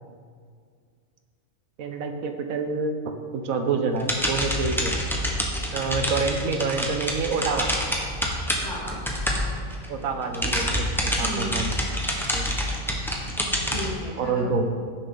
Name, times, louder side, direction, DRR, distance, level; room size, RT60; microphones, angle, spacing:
voice 1, 1.8-3.0 3.3-4.9 5.7-7.7 9.9-11.7 12.3-12.6 14.2-14.7, right 4 dB, 85° right, 6 dB, 1.3 m, -27 dB
sound 1, 3.9-9.9 10.2-13.9, equal, ahead, 1.1 m, -27 dB
voice 2, 8.2-9.0 11.2-11.6 13.7-14.5, equal, 60° left, -3 dB, 2.3 m, -35 dB
15.5 x 6.8 x 3.9 m, 2.1 s
omnidirectional pair, 1.4 m